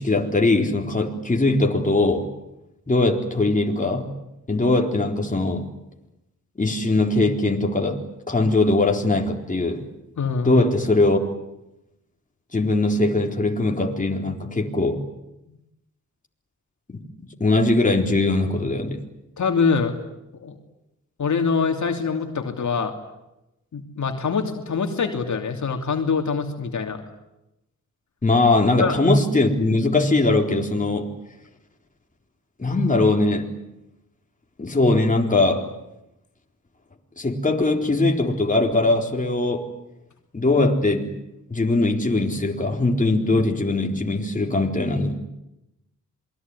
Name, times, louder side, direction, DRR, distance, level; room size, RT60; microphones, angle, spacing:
voice 1, 0.0-2.3 2.9-4.1 4.5-5.7 6.6-9.9 10.4-11.3 12.5-15.0 17.2-19.0 28.2-31.1 32.6-33.5 34.6-35.7 37.2-39.7 40.3-41.1 41.5-45.2, left 2 dB, 25° left, 2 dB, 4.0 m, -21 dB
voice 2, 10.2-10.6 15.5-15.6 19.4-20.0 20.4-20.6 21.2-22.9 23.7-27.0 28.8-29.0, left 5 dB, 70° left, 4 dB, 3.0 m, -24 dB
27.5 x 21.5 x 9.8 m, 0.91 s
wide cardioid pair, 90°, 30 cm